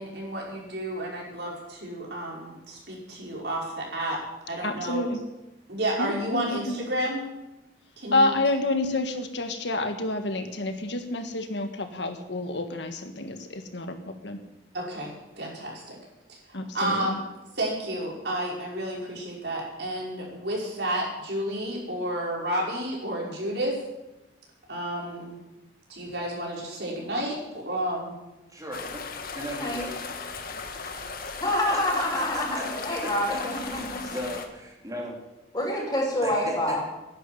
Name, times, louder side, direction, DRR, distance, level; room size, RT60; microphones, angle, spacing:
voice 1, 0.0-4.2 4.5-5.0 5.7-7.2 8.0-8.3 14.7-15.1 15.4-16.0 16.3-16.4 16.7-17.2 17.6-23.8 24.7-25.4 25.9-28.1 30.5-30.6, right 1 dB, 65° right, -3 dB, 5.6 m, -31 dB
voice 2, 4.6-5.2 6.0-6.8 8.1-14.4 16.5-17.2, left 2 dB, 75° left, 7 dB, 1.7 m, -28 dB
voice 3, 28.5-29.0 29.3-30.0 31.7-31.8 32.1-32.7 33.0-35.2 36.2-36.8, equal, 20° right, -1 dB, 3.6 m, -37 dB
sound 1, 28.7-34.5, left 4 dB, 55° left, 1.7 m, -37 dB
voice 4, 29.5-29.9 31.4-34.1 35.5-36.8, left 1 dB, 25° left, -2 dB, 5.8 m, -27 dB
11.0 x 11.0 x 9.9 m, 0.97 s
head